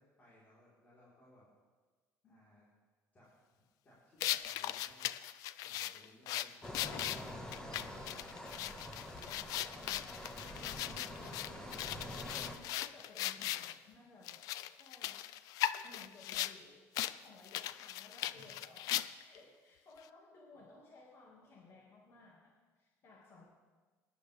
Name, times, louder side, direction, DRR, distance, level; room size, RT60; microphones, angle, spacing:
voice 1, 0.0-1.5 2.2-2.7 3.1-3.3 3.8-5.1 5.5-6.8 7.8-8.5 18.3-18.5, left 1 dB, 30° left, -9 dB, 4.5 m, -63 dB
sound 1, 4.2-13.7 14.2-16.6 16.9-17.1 17.4-19.4, left 14 dB, 75° left, 0.4 m, -39 dB
sound 2, 6.6-12.5, left 1 dB, 10° left, 1.6 m, -46 dB
voice 2, 7.0-8.3 9.0-12.4 12.8-14.5 14.7-15.2 15.8-23.4, left 3 dB, 50° left, -3 dB, 2.3 m, -59 dB
20.5 x 11.0 x 3.6 m, 1.4 s
cardioid pair, 125°, 6 cm